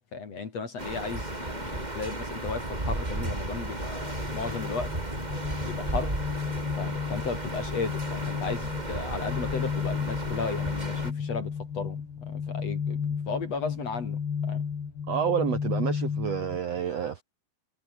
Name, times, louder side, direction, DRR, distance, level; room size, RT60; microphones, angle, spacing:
voice 1, 0.1-4.9 5.6-6.1 6.8-12.0 12.3-13.0 13.3-14.6, left 4 dB, 45° left, 3.7 m, -35 dB
sound 1, 0.8-11.1, right 2 dB, 10° right, 3.0 m, -34 dB
sound 2, 3.8-16.6, left 6 dB, 80° left, 6.3 m, -33 dB
voice 2, 15.1-17.2, right 9 dB, 65° right, 1.6 m, -29 dB
omnidirectional pair, 4.6 m